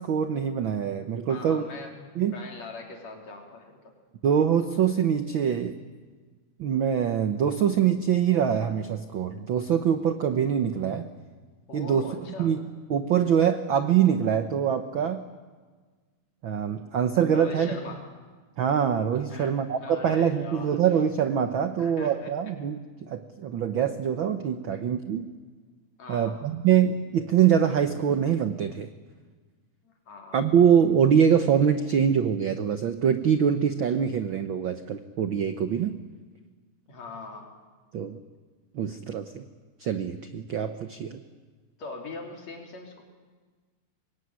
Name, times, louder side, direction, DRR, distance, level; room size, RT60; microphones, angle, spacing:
voice 1, 0.0-1.6 2.2-2.3 4.2-5.8 6.6-11.1 11.7-15.2 16.4-17.7 18.6-25.3 26.1-28.9 30.3-36.0 37.9-38.2 38.7-39.4 39.8-41.2, right 8 dB, 75° right, 9 dB, 1.1 m, -24 dB
voice 2, 1.3-3.8 11.7-12.5 17.3-18.0 19.3-20.7 21.8-22.5 24.7-24.8 26.0-26.4 29.8-30.4 36.9-37.6 41.8-43.0, left 3 dB, 60° left, 2 dB, 4.5 m, -41 dB
25.0 x 22.0 x 9.6 m, 1.4 s
omnidirectional pair, 3.6 m